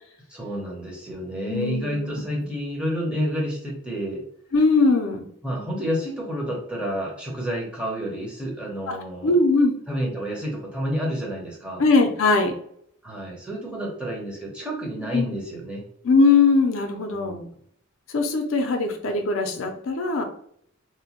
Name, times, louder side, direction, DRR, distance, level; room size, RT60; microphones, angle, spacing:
voice 1, 0.3-4.2 5.4-9.4 9.9-11.8 13.0-15.8 17.1-17.5, equal, 5° right, -3 dB, 0.7 m, -30 dB
voice 2, 1.5-2.2 4.5-5.3 8.9-9.0 9.2-9.7 11.8-12.5 15.1-15.2 16.0-17.4 18.1-20.2, left 3 dB, 70° left, 4 dB, 0.4 m, -20 dB
2.9 x 2.1 x 2.8 m, 0.67 s
head